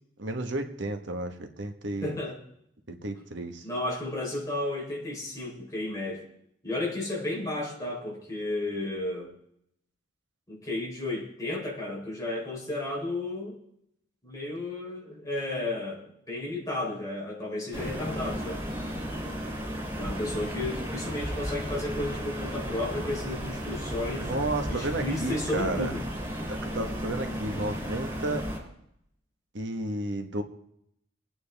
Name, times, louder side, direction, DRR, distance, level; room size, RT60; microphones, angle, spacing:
voice 1, 0.2-2.2 2.9-3.6 24.2-25.9 26.5-28.5 29.5-30.4, right 1 dB, 65° right, 5 dB, 1.3 m, -32 dB
voice 2, 2.0-2.4 3.6-6.3 6.6-9.3 10.5-13.6 14.2-18.7 19.9-24.3 24.7-26.0 27.5-27.7, left 2 dB, 15° left, -3 dB, 4.0 m, -33 dB
sound 1, 17.7-28.6, equal, 25° right, 4.3 m, -34 dB
25.0 x 9.4 x 3.5 m, 0.74 s
head